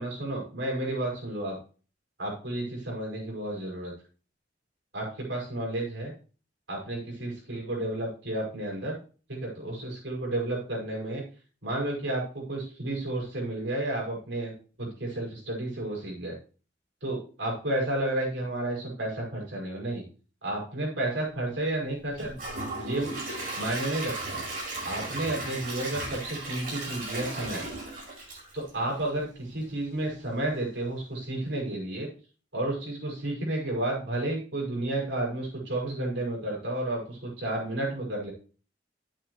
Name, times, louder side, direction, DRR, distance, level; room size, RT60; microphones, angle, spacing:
voice 1, 0.0-1.5 2.2-3.9 4.9-6.1 6.7-9.0 9.3-11.2 11.6-14.5 14.8-16.3 17.0-20.0 20.4-22.4 22.8-23.1 23.6-24.4 24.9-27.6 28.5-32.1 32.5-38.3, right 1 dB, 80° right, -2 dB, 5.8 m, -31 dB
Gurgling / Toilet flush / Trickle dribble, 22.1-29.2 29.6-29.7 30.2-30.3, right 2 dB, 50° right, 5.3 m, -36 dB
11.0 x 8.6 x 3.2 m, 0.38 s
head